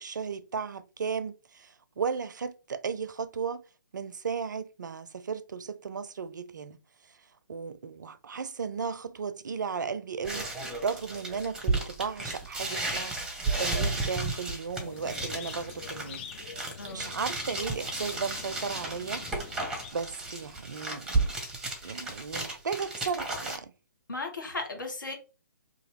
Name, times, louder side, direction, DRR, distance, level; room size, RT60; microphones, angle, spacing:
voice 1, 0.0-3.6 3.9-6.8 7.5-16.3 16.6-19.3 19.9-21.3 21.8-23.7, right 6 dB, 70° right, 0.4 m, -35 dB
sound 1, 10.2-23.6, right 3 dB, 5° right, 0.7 m, -33 dB
sound 2, 14.8-19.9, left 7 dB, 30° left, 0.4 m, -45 dB
voice 2, 16.8-17.1 24.1-25.1, left 3 dB, 80° left, 1.3 m, -36 dB
2.9 x 2.6 x 2.9 m
figure-of-eight pair, 135°, 10 cm